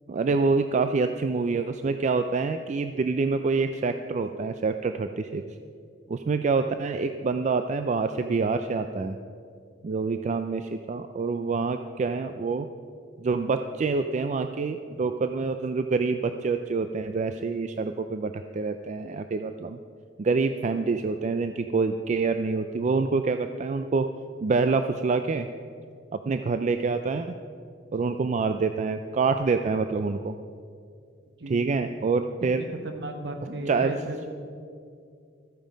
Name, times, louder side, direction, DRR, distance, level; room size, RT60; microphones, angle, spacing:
voice 1, 0.1-5.4 6.1-9.2 9.8-12.7 13.2-19.8 20.2-24.1 24.4-25.5 26.1-27.3 27.9-30.4 31.5-32.6 33.7-33.9, right 4 dB, 40° right, 8 dB, 0.4 m, -26 dB
voice 2, 31.4-31.8 32.6-34.3, right 2 dB, 65° right, 5 dB, 1.4 m, -35 dB
14.0 x 9.1 x 5.2 m, 2.4 s
head